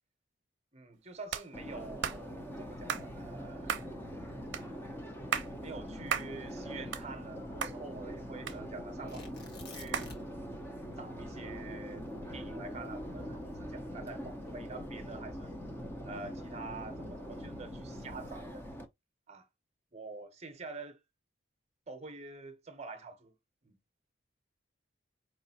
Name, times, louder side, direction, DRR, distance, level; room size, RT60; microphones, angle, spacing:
voice 1, 0.7-3.8 5.6-9.3 9.7-10.1 11.0-12.1 12.3-15.5 16.0-18.6 19.3-19.5 19.9-21.0 21.9-23.3 23.6-23.8, right 3 dB, 35° right, 0.8 m, -47 dB
sound 1, 1.3-1.5 2.0-2.2 2.9-3.1 3.7-3.9 4.5-4.7 5.1-5.5 6.1-6.3 6.7-7.3 7.6-7.8 8.5-9.0 9.9-10.1, right 7 dB, 65° right, 0.6 m, -34 dB
Subway metro underground, 1.5-18.8, equal, 10° left, 0.6 m, -43 dB
Tearing, 9.1-10.5 10.8-10.9 11.4-13.8 14.5-14.9, left 2 dB, 55° left, 1.4 m, -50 dB
4.9 x 3.1 x 2.8 m
head